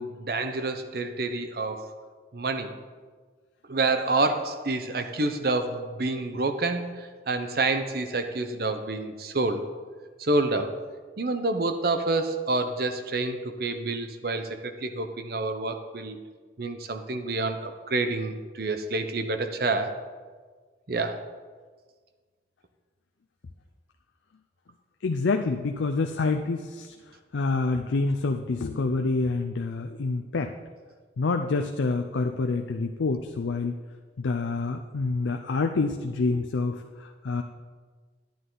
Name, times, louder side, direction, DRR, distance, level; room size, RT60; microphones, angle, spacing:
voice 1, 0.0-1.9 2.3-2.7 3.7-9.6 10.2-10.8 11.2-16.2 16.6-19.9 20.9-21.2, right 2 dB, 55° right, 7 dB, 0.7 m, -28 dB
voice 2, 25.0-26.9 27.3-30.5 31.2-33.8 34.2-37.4, left 3 dB, 90° left, 5 dB, 0.5 m, -27 dB
10.0 x 9.4 x 3.9 m, 1.5 s
head